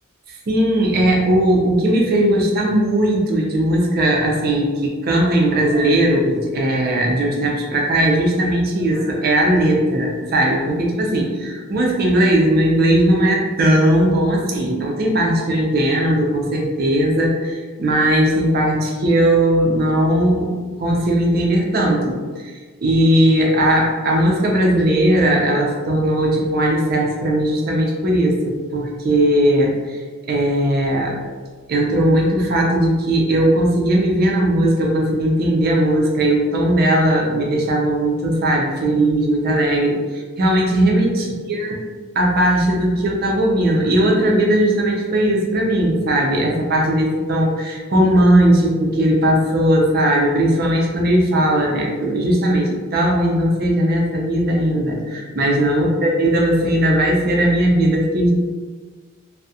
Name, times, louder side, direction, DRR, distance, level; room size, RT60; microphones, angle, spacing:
voice 1, 0.5-22.2 22.8-30.0 30.3-31.2 31.7-41.8 42.2-58.3, right 1 dB, 45° right, -1 dB, 0.4 m, -18 dB
2.3 x 2.0 x 2.6 m, 1.4 s
head